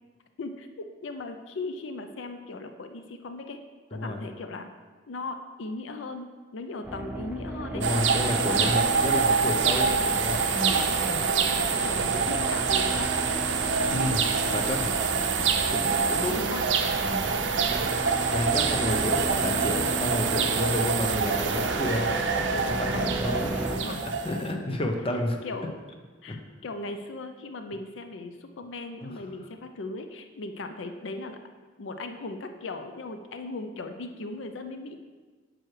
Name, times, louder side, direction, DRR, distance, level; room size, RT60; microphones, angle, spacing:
voice 1, 0.4-3.6 3.9-4.7 5.1-6.3 6.5-7.8 8.4-8.9 10.7-13.4 15.8-16.1 16.3-16.6 22.9-23.2 23.7-24.1 25.4-25.8 26.2-31.4 31.8-35.0, left 2 dB, 80° left, 7 dB, 0.5 m, -38 dB
voice 2, 3.9-4.2 7.7-10.8 11.1-11.2 13.9-14.3 14.5-16.4 17.0-17.3 18.3-25.4 26.3-26.4 29.0-29.1, left 1 dB, 30° left, 4 dB, 0.7 m, -31 dB
sound 1, 6.8-23.8, right 1 dB, 10° right, 0.5 m, -35 dB
sound 2, 7.8-24.5, right 5 dB, 70° right, 0.6 m, -26 dB
9.1 x 6.2 x 3.2 m, 1.4 s
head